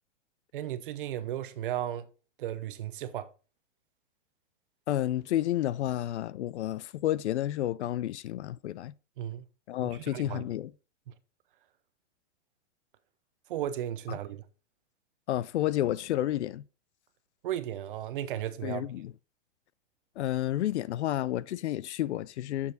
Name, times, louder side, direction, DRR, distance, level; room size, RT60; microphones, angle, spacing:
voice 1, 0.5-2.0 2.4-3.3 9.2-9.4 10.1-10.4 13.5-14.4 17.4-18.9, right 11 dB, 45° right, 0.8 m, -35 dB
voice 2, 4.9-8.9 9.7-10.7 14.1-14.2 15.3-16.6 18.6-19.1 20.2-22.7, left 13 dB, 65° left, 0.5 m, -30 dB
7.2 x 6.9 x 4.0 m
hypercardioid pair, 165°, 37 cm